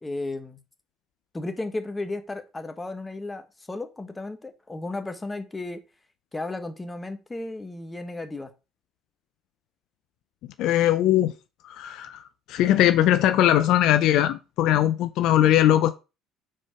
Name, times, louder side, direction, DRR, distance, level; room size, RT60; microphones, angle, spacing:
voice 1, 0.0-0.6 1.3-5.8 6.3-8.5, left 2 dB, 20° left, 1.3 m, -34 dB
voice 2, 10.6-11.3 11.6-12.2 12.5-15.9, left 12 dB, 65° left, 0.4 m, -20 dB
4.7 x 4.4 x 5.7 m
hypercardioid pair, 65°, 0 cm